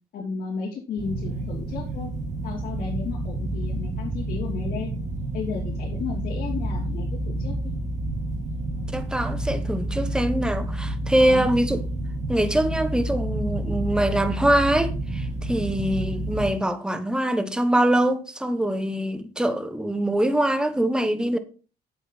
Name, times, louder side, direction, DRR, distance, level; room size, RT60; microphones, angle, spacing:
voice 1, 0.1-2.1 2.4-4.9 5.3-7.5 11.1-11.4, left 5 dB, 60° left, 3.1 m, -33 dB
sound 1, 1.0-16.5, right 1 dB, 45° right, 1.9 m, -29 dB
voice 2, 8.9-11.8 12.3-21.4, right 1 dB, 5° right, 1.1 m, -23 dB
8.7 x 8.3 x 4.1 m
cardioid pair, 110°, 17 cm